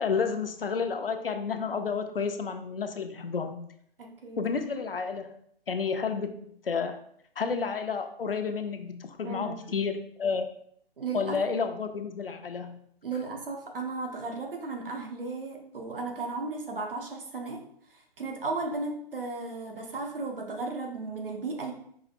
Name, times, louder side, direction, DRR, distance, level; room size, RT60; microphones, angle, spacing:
voice 1, 0.0-3.5 4.4-5.3 5.7-6.3 6.6-7.0 7.4-10.5 11.1-12.8, left 5 dB, 70° left, 7 dB, 0.5 m, -30 dB
voice 2, 4.0-4.4 9.2-9.7 11.0-11.4 13.0-17.6 18.2-21.7, right 3 dB, 65° right, 2 dB, 0.9 m, -35 dB
4.8 x 2.6 x 2.5 m, 0.67 s
figure-of-eight pair, 135°, 30 cm